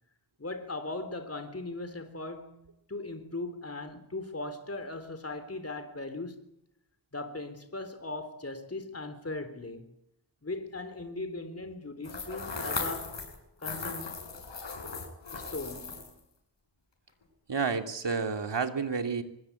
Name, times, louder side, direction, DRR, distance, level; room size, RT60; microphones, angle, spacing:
voice 1, 0.4-2.6 2.9-6.4 7.1-9.9 10.4-13.2 13.6-14.2 15.3-16.1, left 2 dB, 35° left, 3.8 m, -39 dB
sound 1, 12.0-13.4 13.6-16.2, left 4 dB, 85° left, 7.7 m, -37 dB
voice 2, 17.5-19.2, right 5 dB, 75° right, 3.0 m, -30 dB
24.5 x 20.5 x 8.4 m
wide cardioid pair, 55°, 43 cm